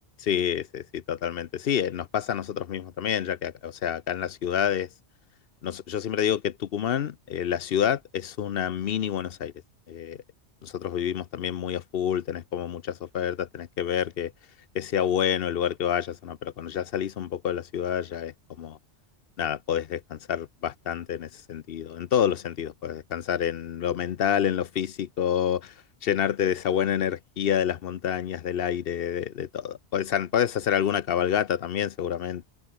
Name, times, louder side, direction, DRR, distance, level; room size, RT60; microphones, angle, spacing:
voice 1, 0.3-4.9 5.6-9.5 9.9-10.2 10.6-14.3 14.7-18.8 19.4-25.7 26.0-32.5, left 9 dB, 60° left, 0.8 m, -28 dB
omnidirectional pair, 1.1 m